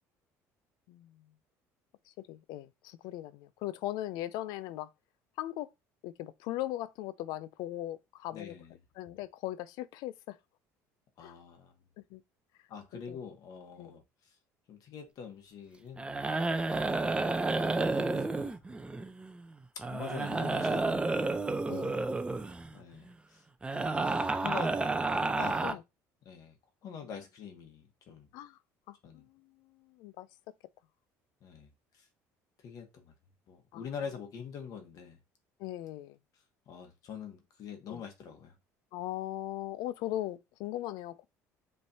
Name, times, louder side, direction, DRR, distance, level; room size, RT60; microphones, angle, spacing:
voice 1, 0.9-1.2 2.1-4.9 5.4-5.7 6.0-8.6 9.0-10.4 11.2-11.4 12.0-12.2 13.1-13.2 13.8-13.9 16.7-16.8 21.7-22.1 25.6-25.8 28.3-28.6 28.9-30.3 33.7-33.8 35.6-36.2 37.9-38.0 38.9-41.3, left 14 dB, 75° left, 0.5 m, -39 dB
voice 2, 8.3-8.7 11.2-11.7 12.7-14.4 14.7-16.6 17.9-18.5 18.9-19.1 19.7-21.3 22.7-23.4 23.7-24.0 24.4-24.7 25.3-25.8 26.2-26.6 26.8-28.3 29.0-29.2 31.4-32.1 32.6-33.1 33.5-35.2 36.7-38.5, left 6 dB, 60° left, 1.3 m, -44 dB
sound 1, 16.0-19.4 19.8-22.7 23.6-25.7, right 3 dB, 15° right, 0.6 m, -31 dB
5.2 x 3.3 x 2.8 m
supercardioid pair, 85°, 7 cm